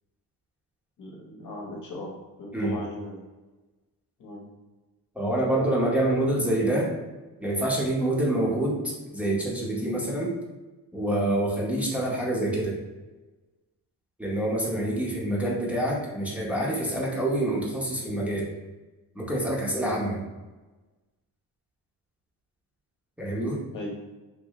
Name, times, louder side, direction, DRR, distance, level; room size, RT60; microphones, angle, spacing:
voice 1, 1.0-3.2 4.2-4.5 14.7-15.0 23.7-23.9, left 1 dB, 55° left, -1 dB, 1.0 m, -38 dB
voice 2, 5.1-6.9 7.4-10.4 10.9-12.8 14.2-18.5 19.1-20.2 23.2-23.6, right 1 dB, 5° right, -5 dB, 0.8 m, -26 dB
3.5 x 2.6 x 3.1 m, 1.2 s
cardioid pair, 115°, 37 cm